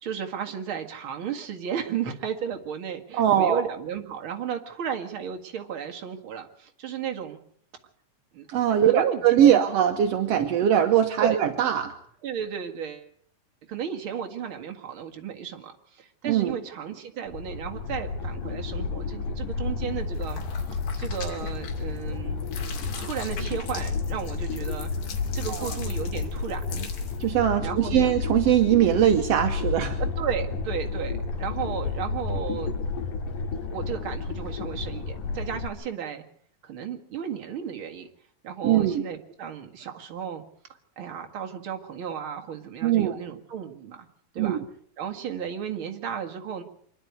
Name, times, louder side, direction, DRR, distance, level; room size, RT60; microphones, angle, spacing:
voice 1, 0.0-7.4 8.3-8.5 8.8-9.6 11.2-11.4 12.2-13.1 13.7-20.4 21.0-22.4 23.0-24.9 25.3-26.9 27.6-28.1 30.0-32.7 33.7-36.2 36.6-38.1 38.4-40.4 41.0-44.1 44.3-44.6 45.0-46.6, right 8 dB, 45° right, 4 dB, 2.1 m, -34 dB
voice 2, 3.1-3.6 8.5-11.9 16.2-16.5 25.5-25.7 27.2-30.0 38.6-39.0 42.8-43.2 44.4-44.6, right 10 dB, 65° right, 6 dB, 1.6 m, -21 dB
sound 1, 17.3-35.7, left 4 dB, 65° left, 3.4 m, -31 dB
sound 2, 20.1-22.1 22.4-27.3, left 6 dB, 80° left, 4.2 m, -42 dB
25.0 x 11.0 x 9.4 m, 0.63 s
omnidirectional pair, 4.0 m